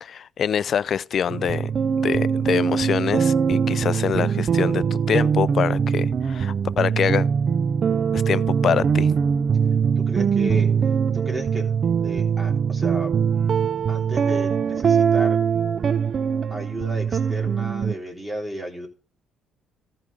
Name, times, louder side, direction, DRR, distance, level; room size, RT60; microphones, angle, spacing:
voice 1, 0.0-1.7 2.0-7.3 8.1-9.1, left 8 dB, 55° left, 0.4 m, -25 dB
sound 1, 1.3-17.9, right 6 dB, 50° right, 0.4 m, -22 dB
voice 2, 10.0-10.7 11.1-13.1 13.9-15.4 16.5-18.9, right 1 dB, 15° right, 3.2 m, -33 dB
14.0 x 4.7 x 5.0 m
hypercardioid pair, 55°, 0 cm